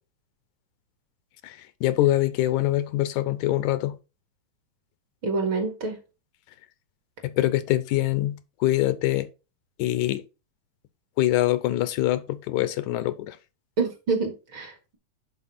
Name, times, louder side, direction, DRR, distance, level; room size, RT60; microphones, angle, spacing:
voice 1, 1.4-4.0 7.2-9.3 9.8-10.2 11.2-13.4, left 15 dB, 85° left, 2.1 m, -24 dB
voice 2, 5.2-6.0 13.8-15.0, right 4 dB, 45° right, 2.2 m, -27 dB
10.5 x 4.6 x 4.2 m
omnidirectional pair, 3.4 m